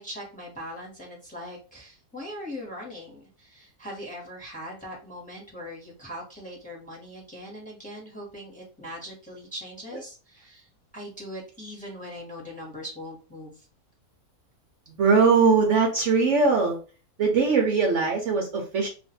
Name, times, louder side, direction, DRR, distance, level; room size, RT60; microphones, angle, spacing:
voice 1, 0.0-10.7 10.9-13.6, equal, 5° left, -2 dB, 1.0 m, -40 dB
voice 2, 14.9-16.8 17.2-18.9, right 4 dB, 60° right, 1 dB, 0.9 m, -21 dB
2.5 x 2.5 x 4.1 m, 0.35 s
omnidirectional pair, 1.5 m